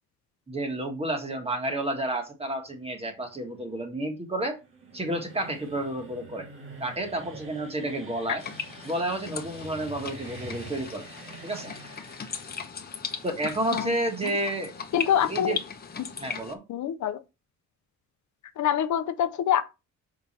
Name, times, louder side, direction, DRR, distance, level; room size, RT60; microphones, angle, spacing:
voice 1, 0.5-4.6 4.9-6.5 6.8-8.4 8.8-11.0 11.4-11.7 13.2-14.7 15.3-15.6 16.2-16.6, right 1 dB, 20° right, 1.6 m, -30 dB
sound 1, 2.6-13.8, right 2 dB, 40° right, 1.8 m, -46 dB
sound 2, 8.4-16.5, left 6 dB, 30° left, 1.0 m, -38 dB
voice 2, 14.9-15.5 16.7-17.2 18.6-19.6, left 10 dB, 70° left, 0.7 m, -25 dB
6.6 x 5.0 x 4.2 m
cardioid pair, 155°, 31 cm